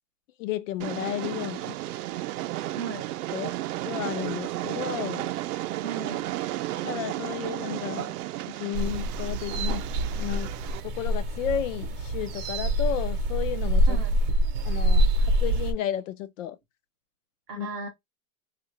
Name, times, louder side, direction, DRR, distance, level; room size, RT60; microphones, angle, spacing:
voice 1, 0.4-1.8 3.3-3.6 3.8-5.3 6.8-8.1 8.5-9.8 10.2-10.5 10.8-14.0 14.7-16.6 17.6-17.7, left 11 dB, 55° left, 0.6 m, -33 dB
Train, 0.8-10.8, right 15 dB, 70° right, 0.6 m, -33 dB
voice 2, 2.7-3.1 5.8-6.3 13.9-14.2 17.5-17.9, right 4 dB, 20° right, 0.5 m, -36 dB
sound 1, 8.7-15.7, right 1 dB, 40° right, 0.9 m, -25 dB
3.6 x 2.4 x 3.1 m
supercardioid pair, 165°, 47 cm